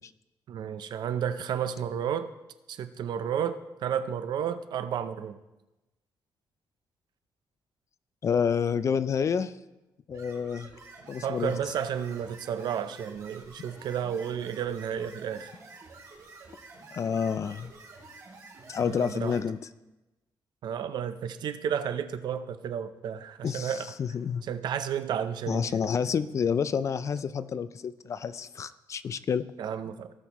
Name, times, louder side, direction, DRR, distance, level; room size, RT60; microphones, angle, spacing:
voice 1, 0.5-2.3 2.7-5.4 11.2-15.5 18.8-19.4 20.6-23.9 24.4-25.7 29.6-30.2, right 8 dB, 70° right, 11 dB, 0.6 m, -32 dB
voice 2, 8.2-9.6 10.1-10.7 11.1-11.5 16.9-17.7 18.7-19.6 23.4-24.4 25.5-29.4, left 6 dB, 40° left, 14 dB, 0.4 m, -29 dB
sound 1, 10.1-19.4, right 3 dB, 50° right, 3.0 m, -49 dB
16.5 x 6.2 x 3.0 m, 1.0 s
cardioid pair, 140°, 8 cm